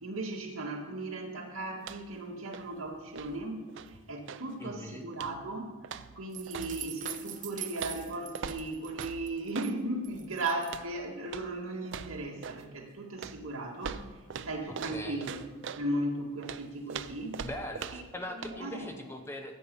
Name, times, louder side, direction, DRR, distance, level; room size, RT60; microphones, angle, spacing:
voice 1, 0.0-5.7 6.1-14.0 14.4-15.4 15.8-17.5 17.9-18.0 18.3-18.9, right 2 dB, 70° right, 0 dB, 2.0 m, -36 dB
sound 1, 1.8-2.2 2.5-4.5 5.1-5.5 5.8-7.2 7.8-9.8 10.6-10.9 11.3-11.5 11.8-12.7 13.2-15.9 16.4-18.2 18.4-18.6, right 6 dB, 55° right, 0.5 m, -42 dB
voice 2, 4.6-5.0 14.7-15.3 17.4-19.6, left 1 dB, 10° left, 4 dB, 0.8 m, -41 dB
sound 2, 6.3-9.7 10.0-10.7, right 10 dB, 35° right, 0.8 m, -43 dB
14.0 x 8.6 x 5.4 m, 1.4 s
head